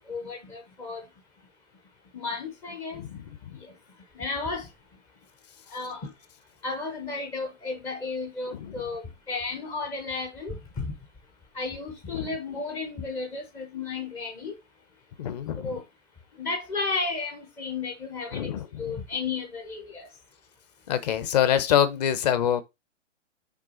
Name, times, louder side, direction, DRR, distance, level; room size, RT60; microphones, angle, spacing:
voice 1, 0.0-1.1 2.1-3.0 3.5-3.7 4.1-4.7 5.7-6.1 6.6-10.9 11.5-14.6 15.6-15.8 16.3-18.5 18.8-20.1, left 4 dB, 5° left, 0.5 m, -33 dB
voice 2, 15.2-15.7 18.3-18.6 20.9-22.6, left 10 dB, 35° left, 0.8 m, -24 dB
6.0 x 3.4 x 4.8 m
hypercardioid pair, 135°, 37 cm